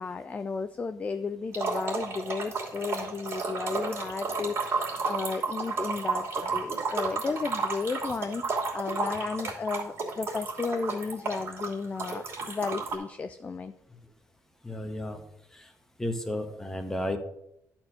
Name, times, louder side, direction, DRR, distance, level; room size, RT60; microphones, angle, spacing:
voice 1, 0.0-13.7, left 4 dB, 25° left, 10 dB, 0.4 m, -34 dB
sound 1, 1.5-13.0, right 4 dB, 45° right, 2.8 m, -32 dB
voice 2, 14.6-15.2 15.5-15.7 16.0-17.2, left 1 dB, 5° left, 6 dB, 1.2 m, -33 dB
11.0 x 4.5 x 6.3 m, 0.77 s
cardioid pair, 130°, 6 cm